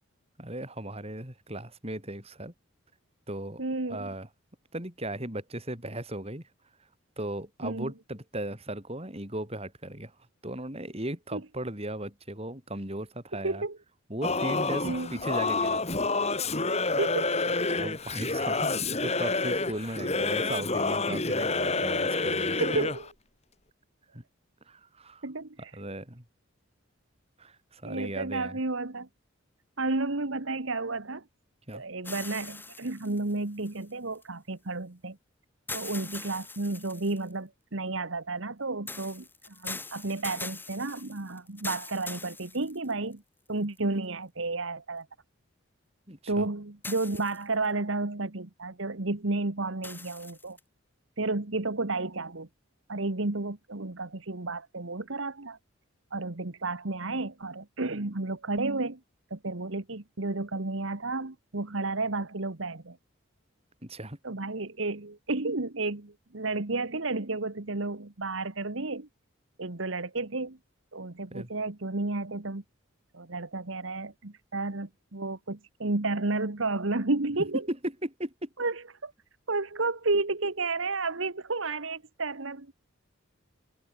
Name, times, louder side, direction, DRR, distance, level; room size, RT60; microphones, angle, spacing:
voice 1, 0.4-2.5 3.3-3.6 3.9-4.3 4.7-6.4 7.2-10.1 10.4-13.6 14.1-15.8 17.7-22.6 24.1-24.2 24.7-25.3 25.7-26.2 27.4-28.6 31.7-31.8 46.1-46.5 63.8-64.2 71.3-71.5 77.7-78.5, right 1 dB, 30° right, 5.6 m, -37 dB
voice 2, 3.6-4.1 7.6-7.9 11.3-11.4 13.4-13.8 14.8-15.2 17.0-17.4 22.6-23.0 25.2-25.7 27.8-29.1 29.8-31.2 31.7-35.2 35.7-43.2 43.5-45.1 46.3-50.6 51.2-52.5 52.9-55.6 56.1-59.0 59.3-63.0 64.2-69.1 69.6-70.6 70.9-72.6 73.1-77.6 78.6-79.1 79.5-82.7, right 3 dB, 70° right, 1.6 m, -32 dB
Singing / Musical instrument, 14.2-23.1, left 3 dB, 30° left, 3.2 m, -28 dB
sound 1, 32.0-34.2 35.7-37.3 38.9-43.1 43.8-43.9 46.8-47.7 49.8-50.6, left 3 dB, 10° left, 4.7 m, -42 dB
head